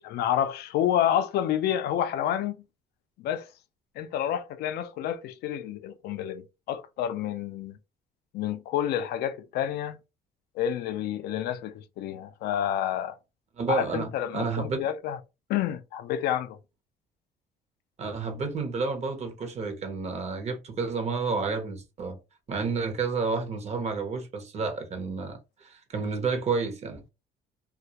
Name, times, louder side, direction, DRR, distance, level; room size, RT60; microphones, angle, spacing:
voice 1, 0.0-2.6 3.2-3.5 4.0-7.8 8.3-10.0 10.6-13.2 13.7-15.2 15.5-16.6, left 10 dB, 70° left, 0.4 m, -29 dB
voice 2, 13.6-14.8 18.0-22.2 22.5-27.1, right 4 dB, 40° right, 0.7 m, -30 dB
2.2 x 2.1 x 2.8 m
cardioid pair, 110°, 17 cm